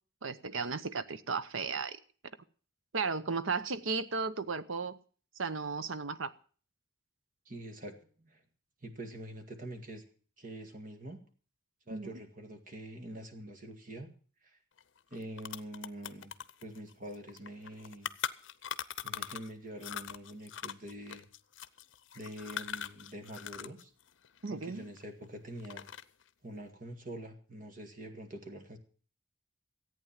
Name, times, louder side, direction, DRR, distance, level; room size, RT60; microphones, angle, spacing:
voice 1, 0.2-2.0 2.9-5.0 5.4-6.3 11.9-12.1 24.4-24.8, right 4 dB, 90° right, 14 dB, 0.9 m, -35 dB
voice 2, 7.5-8.4 8.8-10.0 10.4-11.2 11.9-14.1 14.4-14.6 15.1-16.3 16.6-18.1 19.0-21.2 22.1-23.9 24.5-25.9 26.4-28.8, right 1 dB, 40° right, 5 dB, 2.0 m, -45 dB
sound 1, 14.8-14.9 15.1-19.5 19.8-23.8 24.1-25.2 25.6-26.2, left 8 dB, 70° left, 0.6 m, -41 dB
14.5 x 8.8 x 7.3 m, 0.42 s
head